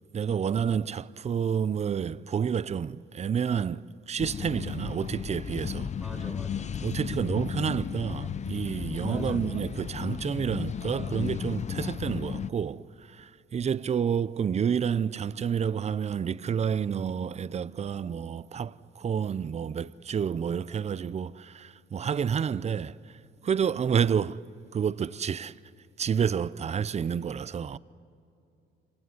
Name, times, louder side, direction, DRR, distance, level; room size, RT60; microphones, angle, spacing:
voice 1, 0.1-3.8 4.1-5.9 6.8-12.8 13.5-18.7 19.0-21.3 21.9-22.9 23.4-24.4 24.7-25.5 26.0-27.8, right 7 dB, 35° right, 0.5 m, -29 dB
sound 1, 4.2-12.5, left 7 dB, 35° left, 0.5 m, -34 dB
voice 2, 6.0-6.7 7.1-7.3 9.0-9.4, equal, ahead, 2.5 m, -40 dB
26.5 x 17.5 x 9.7 m
cardioid pair, 90°, 20 cm